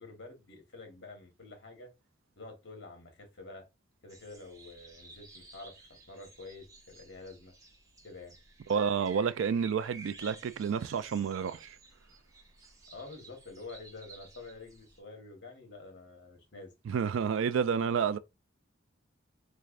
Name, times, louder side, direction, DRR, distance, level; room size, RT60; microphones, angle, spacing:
voice 1, 0.0-1.9 2.4-3.6 4.0-7.5 8.0-8.4 12.9-16.7, left 3 dB, 60° left, 1.3 m, -48 dB
sound 1, 4.1-15.0, right 3 dB, 15° right, 0.8 m, -54 dB
voice 2, 8.7-11.8 16.9-18.2, right 6 dB, 80° right, 0.3 m, -30 dB
3.5 x 3.2 x 2.4 m
head